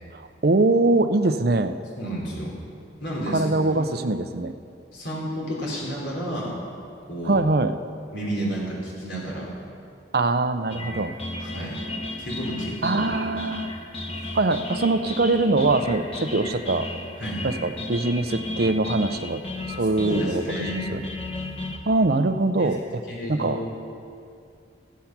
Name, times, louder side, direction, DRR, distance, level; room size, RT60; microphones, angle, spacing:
voice 1, 0.1-1.8 3.3-4.6 7.2-7.8 10.1-11.1 12.8-13.7 14.3-16.9 17.4-19.4 19.7-20.4 20.9-21.0 21.9-23.0 23.3-23.6, right 2 dB, 55° right, 10 dB, 0.6 m, -23 dB
voice 2, 2.0-2.6 3.0-3.9 4.9-6.6 7.1-7.4 8.1-9.5 11.4-11.8 12.2-13.0 17.2-17.4 20.0-20.9 22.6-22.7 23.1-23.7, equal, 75° left, -4 dB, 3.4 m, -31 dB
sound 1, 10.7-21.8, left 2 dB, 30° left, 1.2 m, -34 dB
16.0 x 8.3 x 5.9 m, 2.4 s
head